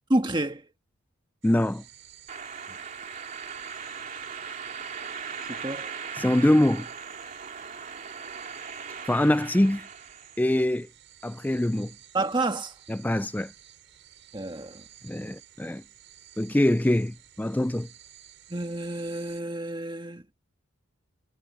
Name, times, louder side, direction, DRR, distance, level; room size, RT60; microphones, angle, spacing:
voice 1, 0.1-0.7 2.7-2.8 5.5-5.9 12.1-12.8 14.3-14.8 18.5-20.2, right 2 dB, 20° right, 1.6 m, -29 dB
voice 2, 1.4-1.8 6.2-6.9 9.1-9.9 10.4-10.9 11.2-11.9 12.9-13.5 15.0-15.8 16.4-17.9, left 1 dB, 10° left, 0.3 m, -24 dB
sound 1, 1.4-19.4, right 11 dB, 55° right, 6.7 m, -53 dB
sound 2, 2.3-10.4, right 6 dB, 35° right, 2.7 m, -39 dB
head